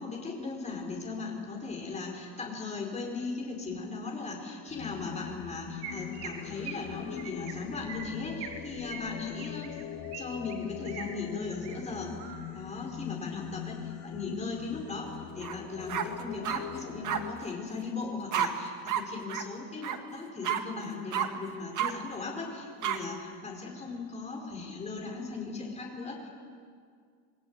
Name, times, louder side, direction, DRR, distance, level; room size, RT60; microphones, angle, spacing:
voice 1, 0.0-9.8 10.1-26.3, left 4 dB, 15° left, 0 dB, 4.7 m, -38 dB
Singing, 4.7-17.3, left 10 dB, 85° left, 1.8 m, -42 dB
Chirp tweet, 5.8-6.3 6.6-6.8 7.2-7.5 7.8-8.6 8.9-10.2 10.5-11.0 11.5-11.7 12.2-12.5, right 7 dB, 75° right, 4.5 m, -42 dB
sound 1, 15.4-15.6 15.9-16.6 17.0-17.2 18.3-18.5 18.9-19.0 19.3-19.4 19.8-20.0 20.4-20.6 21.1-21.3 21.7-21.9 22.8-23.0, right 10 dB, 45° right, 1.8 m, -30 dB
27.0 x 20.0 x 9.5 m, 2.1 s
cardioid pair, 175°, 43 cm